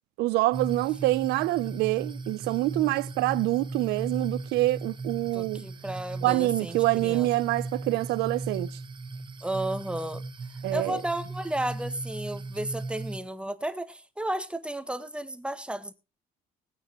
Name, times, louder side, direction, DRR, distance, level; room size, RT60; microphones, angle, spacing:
voice 1, 0.2-5.6 6.2-8.8 10.6-11.0, right 19 dB, 90° right, 0.6 m, -26 dB
sound 1, 0.5-13.2, right 3 dB, 30° right, 1.4 m, -37 dB
voice 2, 5.3-7.3 9.4-10.2 10.7-15.9, right 1 dB, 5° right, 1.4 m, -33 dB
20.0 x 9.2 x 3.0 m
cardioid pair, 110°, 17 cm